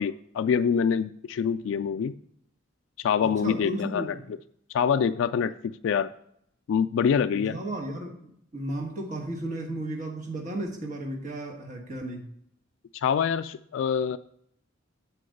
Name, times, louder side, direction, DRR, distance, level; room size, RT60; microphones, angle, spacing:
voice 1, 0.0-2.1 3.0-4.2 4.7-6.1 6.7-7.6 12.9-14.2, left 7 dB, 75° left, 10 dB, 0.3 m, -25 dB
voice 2, 3.2-4.2 7.3-12.3, right 1 dB, 40° right, 0 dB, 1.2 m, -34 dB
7.6 x 4.6 x 6.3 m, 0.71 s
head